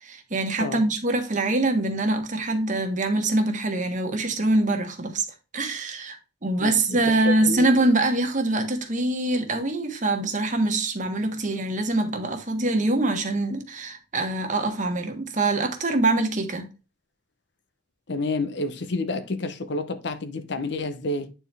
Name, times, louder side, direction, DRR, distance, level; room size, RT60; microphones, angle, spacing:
voice 1, 0.0-5.2 5.5-16.7, right 2 dB, 45° right, 1.4 m, -24 dB
voice 2, 6.6-7.6 18.1-21.3, left 2 dB, 65° left, 0.8 m, -29 dB
9.1 x 4.4 x 3.4 m
head